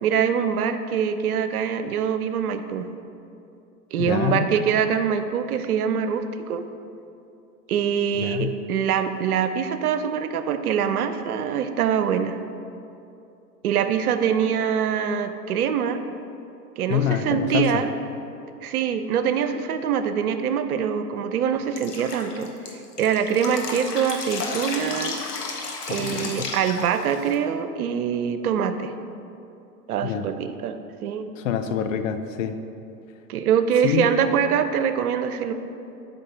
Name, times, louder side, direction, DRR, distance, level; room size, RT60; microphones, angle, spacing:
voice 1, 0.0-2.9 3.9-6.6 7.7-12.4 13.6-16.0 16.8-17.9 18.6-22.5 23.0-25.2 25.9-28.9 29.9-31.3 33.3-35.5, right 8 dB, 65° right, 9 dB, 0.6 m, -24 dB
voice 2, 4.0-4.5 8.2-8.5 16.9-17.8 25.9-26.5 30.0-30.2 31.4-32.6 33.8-34.1, left 9 dB, 55° left, 8 dB, 0.6 m, -26 dB
Drip, 21.8-27.3, left 4 dB, 75° left, 1.2 m, -33 dB
5.4 x 5.1 x 6.5 m, 2.7 s
figure-of-eight pair, 100°, 48 cm